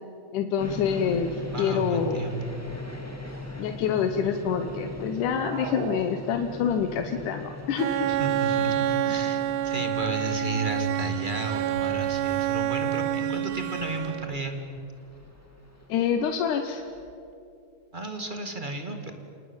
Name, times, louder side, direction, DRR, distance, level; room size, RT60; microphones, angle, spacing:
voice 1, 0.3-2.3 3.6-8.1 15.9-16.8, left 7 dB, 85° left, 6 dB, 2.6 m, -27 dB
sound 1, 0.6-17.1, left 2 dB, 5° left, 2.1 m, -41 dB
voice 2, 1.5-2.5 8.1-14.6 17.9-19.1, right 2 dB, 20° right, 5 dB, 1.8 m, -33 dB
sound 2, 5.2-6.9, right 7 dB, 70° right, 2.3 m, -38 dB
Bowed string instrument, 7.8-14.5, right 12 dB, 85° right, 2.3 m, -28 dB
27.5 x 19.0 x 8.9 m, 2.7 s
omnidirectional pair, 3.5 m